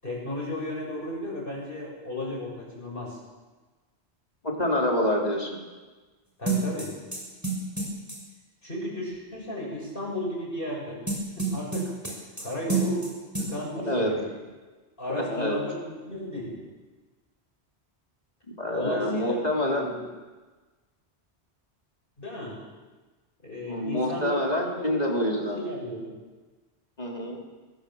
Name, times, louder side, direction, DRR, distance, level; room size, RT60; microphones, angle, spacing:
voice 1, 0.0-3.2 6.4-7.0 8.6-11.0 11.4-11.9 12.4-14.4 15.0-16.6 18.7-20.1 22.2-22.6 23.4-26.2, left 1 dB, 55° left, -2 dB, 7.6 m, -34 dB
voice 2, 4.4-5.6 13.9-14.1 15.1-15.6 18.6-20.0 23.7-25.6 27.0-27.4, left 1 dB, 35° left, -1 dB, 4.2 m, -27 dB
sound 1, 6.5-8.2 11.1-12.4 12.7-13.1 13.3-13.5, right 3 dB, 15° right, 6.0 m, -28 dB
22.5 x 21.5 x 7.3 m, 1.3 s
omnidirectional pair, 1.1 m